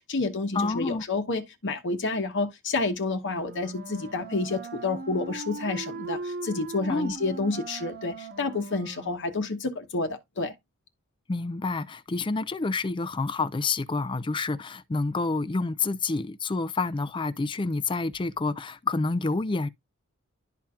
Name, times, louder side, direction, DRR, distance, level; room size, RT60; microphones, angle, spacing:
voice 1, 0.0-10.5, left 3 dB, 60° left, 1.0 m, -29 dB
voice 2, 0.5-1.0 6.9-7.1 11.3-19.7, left 3 dB, 25° left, 0.4 m, -28 dB
Wind instrument woodwind instrument, 3.3-9.3, right 3 dB, 50° right, 1.0 m, -39 dB
12.0 x 4.3 x 2.4 m
head